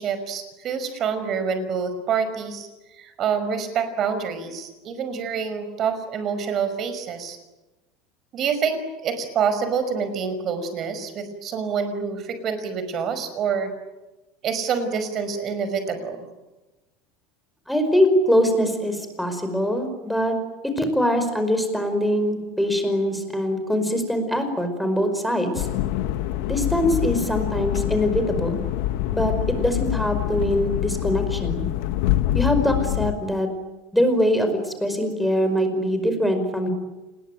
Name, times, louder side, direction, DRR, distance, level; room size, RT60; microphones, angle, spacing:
voice 1, 0.0-2.7 3.0-7.4 8.3-13.7 14.4-16.3, right 6 dB, 35° right, 10 dB, 5.4 m, -27 dB
voice 2, 17.7-20.3 20.8-25.7 26.5-28.6 29.1-31.7 32.3-33.5 33.9-36.7, equal, ahead, 6 dB, 5.1 m, -23 dB
sound 1, 25.5-33.1, left 13 dB, 70° left, 1.9 m, -25 dB
28.5 x 21.5 x 9.2 m, 1.1 s
supercardioid pair, 145°, 0 cm